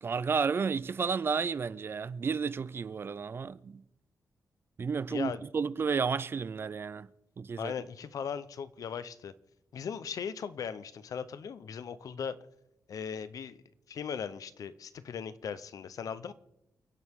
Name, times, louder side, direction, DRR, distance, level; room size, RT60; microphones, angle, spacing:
voice 1, 0.0-3.8 4.8-7.1 7.4-7.7, right 5 dB, 40° right, 0.4 m, -32 dB
voice 2, 5.1-5.4 7.6-9.3 9.7-12.4 12.9-13.6 13.9-16.3, left 7 dB, 70° left, 0.8 m, -38 dB
29.5 x 11.0 x 3.7 m
wide cardioid pair, 150°, 6 cm